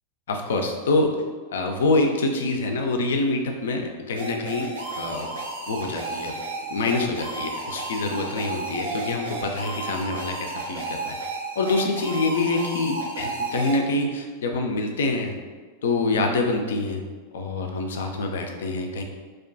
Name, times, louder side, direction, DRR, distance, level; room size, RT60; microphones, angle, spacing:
voice 1, 0.3-1.2 1.5-5.4 5.7-6.4 6.7-11.1 11.6-15.3 15.8-17.0 17.3-19.0, left 2 dB, 60° left, 3 dB, 0.3 m, -26 dB
sound 1, 4.2-13.8, right 3 dB, 65° right, 0.4 m, -33 dB
2.3 x 2.2 x 2.4 m, 1.4 s
figure-of-eight pair, 90°, 0 cm